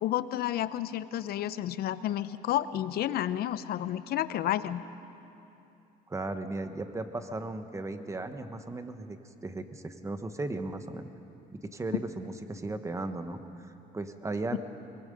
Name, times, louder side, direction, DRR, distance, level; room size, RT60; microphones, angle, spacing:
voice 1, 0.0-4.8 11.9-12.0 14.5-14.6, left 12 dB, 65° left, 14 dB, 0.7 m, -31 dB
voice 2, 6.1-9.2 9.4-11.1 11.6-14.6, right 2 dB, 15° right, 8 dB, 1.2 m, -36 dB
24.0 x 22.0 x 5.3 m, 2.8 s
cardioid pair, 110°, 17 cm